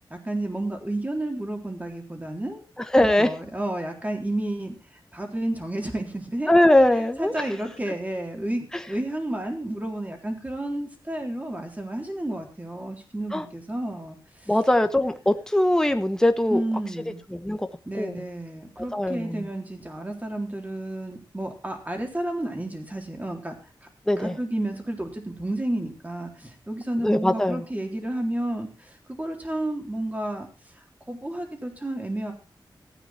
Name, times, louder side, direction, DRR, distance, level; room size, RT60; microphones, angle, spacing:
voice 1, 0.1-2.6 3.2-4.8 5.1-6.5 7.2-14.2 14.4-14.5 16.5-17.2 17.9-23.6 24.2-30.5 31.1-32.3, right 1 dB, 20° right, 3 dB, 3.8 m, -31 dB
voice 2, 2.9-3.3 6.5-7.4 13.3-13.4 14.5-16.6 17.3-17.7 17.9-18.2 18.9-19.5 24.1-24.3 27.0-27.6, left 1 dB, 5° left, 8 dB, 1.1 m, -21 dB
15.5 x 9.3 x 4.4 m, 0.33 s
wide cardioid pair, 80°, 8 cm